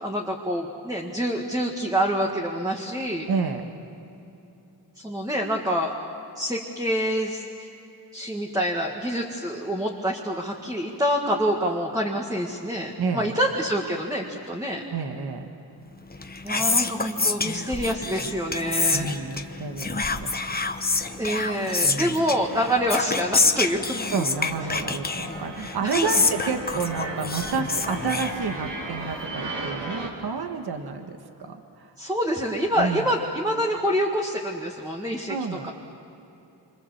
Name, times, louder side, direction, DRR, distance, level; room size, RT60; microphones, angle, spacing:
voice 1, 0.0-3.3 5.0-5.9 6.4-7.7 8.1-14.8 16.4-19.1 21.2-23.8 25.8-26.1 32.0-35.4 35.6-35.7, equal, 10° right, 0 dB, 1.9 m, -26 dB
voice 2, 3.3-3.7 13.0-13.3 14.9-15.5 18.9-20.4 21.8-22.2 24.1-31.9 32.8-33.1 35.3-35.7, right 5 dB, 60° right, 5 dB, 1.6 m, -30 dB
Whispering, 16.0-28.9, left 3 dB, 20° left, 1.1 m, -27 dB
sound 1, 18.8-19.0 19.2-19.3 20.0-20.1 20.3-20.7 21.0-30.1, right 2 dB, 80° right, 3.7 m, -38 dB
28.0 x 26.0 x 7.4 m, 2.9 s
wide cardioid pair, 140°, 42 cm